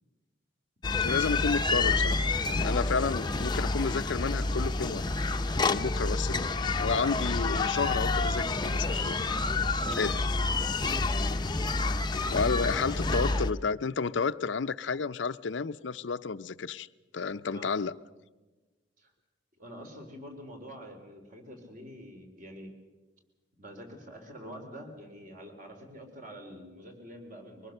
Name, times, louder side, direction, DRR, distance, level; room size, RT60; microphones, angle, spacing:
sound 1, 0.8-13.5, left 3 dB, 25° left, 0.7 m, -28 dB
voice 1, 1.0-5.0 5.6-9.2 9.9-10.2 11.4-11.6 12.3-16.9 17.1-17.9, left 5 dB, 75° left, 0.6 m, -31 dB
voice 2, 2.8-3.1 9.8-10.2 12.6-13.2 17.5-17.8 19.0-19.1 19.6-22.7 23.6-27.7, equal, 45° right, 3.7 m, -45 dB
24.0 x 19.5 x 6.6 m
head